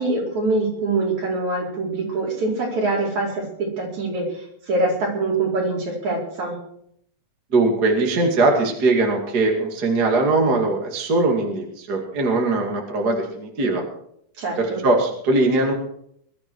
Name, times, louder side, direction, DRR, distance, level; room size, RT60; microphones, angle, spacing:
voice 1, 0.0-6.5 14.4-14.8, right 2 dB, 65° right, -2 dB, 5.9 m, -24 dB
voice 2, 7.5-13.8 14.6-15.7, right 2 dB, 35° right, 1 dB, 2.6 m, -20 dB
21.5 x 13.0 x 4.8 m, 0.69 s
omnidirectional pair, 3.6 m